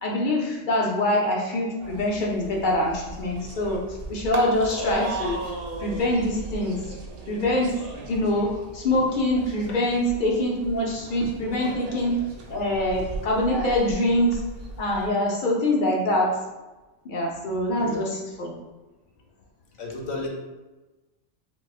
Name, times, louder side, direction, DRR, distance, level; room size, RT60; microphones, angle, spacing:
voice 1, 0.0-5.4 5.8-6.8 7.3-7.8 8.1-12.2 12.5-14.4 14.8-16.4 17.0-18.5, left 1 dB, 55° left, -1 dB, 0.6 m, -24 dB
sound 1, 1.8-15.1, right 2 dB, 60° right, 0.8 m, -37 dB
voice 2, 19.8-20.3, left 3 dB, 85° left, 1 dB, 1.0 m, -33 dB
4.2 x 2.1 x 2.3 m, 1.1 s
omnidirectional pair, 1.2 m